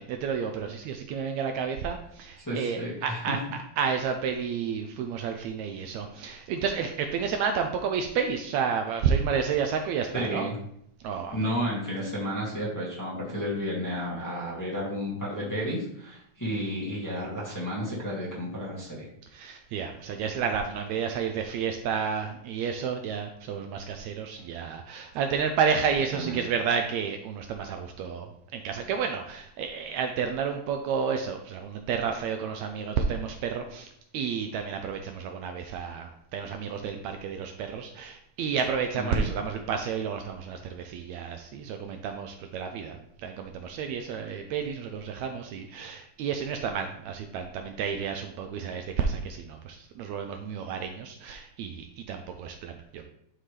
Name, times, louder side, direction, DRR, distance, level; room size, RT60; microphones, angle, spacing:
voice 1, 0.0-10.5 11.0-11.4 19.3-53.0, right 6 dB, 80° right, 5 dB, 1.6 m, -31 dB
voice 2, 2.4-3.4 6.1-6.3 10.1-10.6 11.3-19.1 24.4-24.5 26.1-26.4 39.0-39.2, equal, 10° left, -6 dB, 0.9 m, -32 dB
11.5 x 3.8 x 3.2 m, 0.72 s
omnidirectional pair, 3.7 m